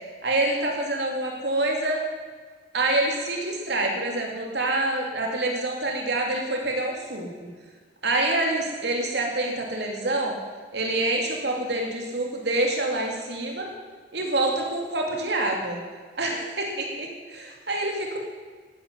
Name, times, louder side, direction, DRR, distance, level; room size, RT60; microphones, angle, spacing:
voice 1, 0.2-2.0 2.7-7.3 8.0-10.4 10.7-13.7 14.1-15.8 16.2-18.2, right 2 dB, 65° right, 1 dB, 2.8 m, -26 dB
14.0 x 9.9 x 9.7 m, 1.5 s
head